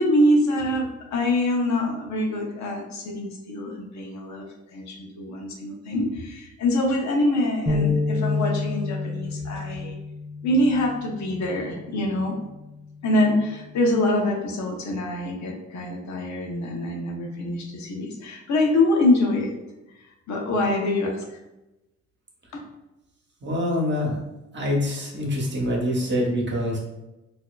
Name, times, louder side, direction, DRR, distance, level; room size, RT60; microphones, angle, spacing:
voice 1, 0.0-4.4 4.7-9.9 10.4-12.3 13.0-19.5 20.3-21.2 22.5-22.6, left 1 dB, 65° left, 0 dB, 0.9 m, -24 dB
sound 1, 7.7-13.9, left 4 dB, 10° left, 0.9 m, -30 dB
voice 2, 23.4-24.2 24.5-26.8, left 1 dB, 35° right, -1 dB, 1.1 m, -25 dB
4.3 x 2.7 x 2.3 m, 0.97 s
cardioid pair, 90°, 30 cm